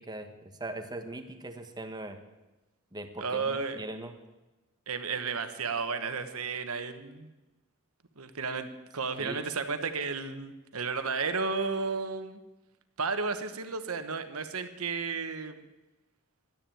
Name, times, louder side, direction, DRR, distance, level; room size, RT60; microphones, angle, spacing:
voice 1, 0.0-2.2 2.9-4.1 9.2-9.4, right 2 dB, 20° right, 6 dB, 1.3 m, -40 dB
voice 2, 3.2-3.8 4.9-7.3 8.2-12.4 13.0-15.7, right 4 dB, 75° right, 9 dB, 1.3 m, -33 dB
12.0 x 10.0 x 9.1 m, 1.1 s
head